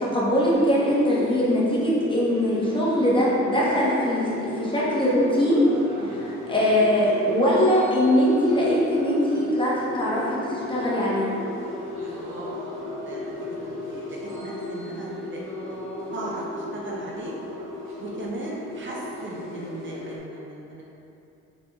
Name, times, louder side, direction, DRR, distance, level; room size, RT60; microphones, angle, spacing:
voice 1, 0.1-5.6 6.0-11.3, equal, 15° left, -7 dB, 0.9 m, -22 dB
sound 1, 0.5-20.2, left 2 dB, 80° right, 0.9 m, -34 dB
voice 2, 12.0-15.4 15.7-15.8 16.1-17.3 18.0-20.8, right 2 dB, 40° right, -4 dB, 0.6 m, -38 dB
4.1 x 3.4 x 2.2 m, 2.8 s
cardioid pair, 90°, 30 cm